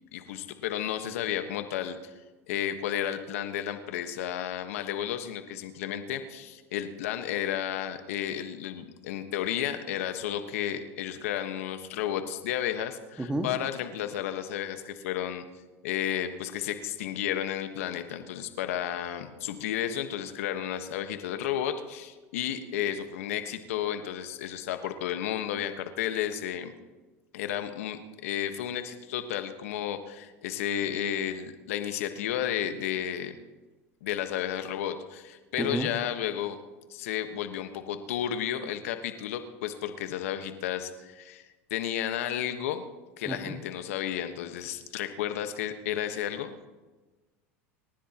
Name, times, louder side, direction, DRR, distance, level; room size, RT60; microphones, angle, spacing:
voice 1, 0.1-2.0 2.5-15.4 15.8-26.7 27.3-33.4 34.0-36.6 36.9-41.4 41.7-42.8 43.2-46.6, left 10 dB, 75° left, 8 dB, 1.4 m, -32 dB
voice 2, 35.6-35.9 43.3-43.5, right 1 dB, 10° right, 6 dB, 1.8 m, -30 dB
27.0 x 15.0 x 3.0 m, 1.2 s
hypercardioid pair, 90°, 7 cm